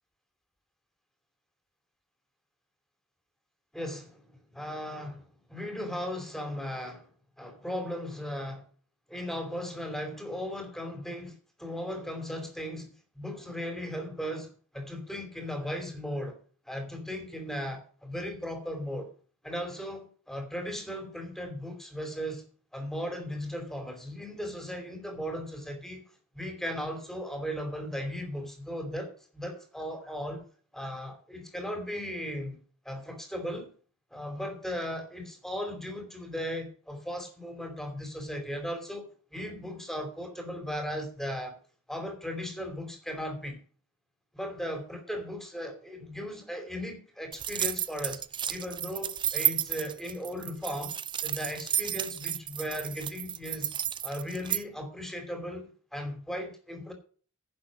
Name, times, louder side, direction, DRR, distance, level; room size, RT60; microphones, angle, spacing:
voice 1, 3.7-4.3 4.5-7.1 7.4-8.7 9.1-16.4 16.7-19.1 19.4-22.4 22.7-26.0 26.3-30.4 30.7-32.6 32.8-33.7 34.1-41.6 41.9-43.6 44.3-50.9 51.2-53.7 54.0-56.9, equal, ahead, 2.8 m, -37 dB
sound 1, 47.3-54.6, right 10 dB, 20° right, 0.4 m, -32 dB
10.5 x 6.6 x 7.4 m
head